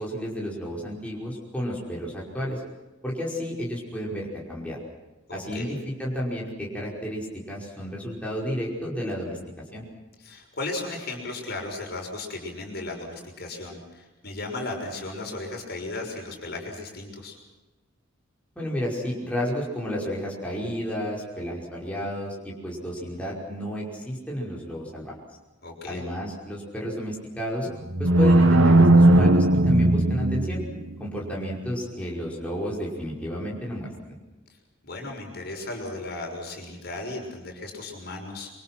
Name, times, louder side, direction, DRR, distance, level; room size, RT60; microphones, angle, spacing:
voice 1, 0.0-2.6 3.0-4.8 5.3-9.4 9.7-9.8 18.6-25.1 25.9-27.7 28.0-30.6 31.0-34.2, equal, 5° left, -4 dB, 5.4 m, -31 dB
voice 2, 5.3-5.8 10.2-17.4 25.6-26.0 34.8-38.5, left 2 dB, 50° left, 2 dB, 6.3 m, -35 dB
sound 1, 27.7-30.9, right 1 dB, 80° right, 1.3 m, -17 dB
27.0 x 25.0 x 6.0 m, 1.1 s
head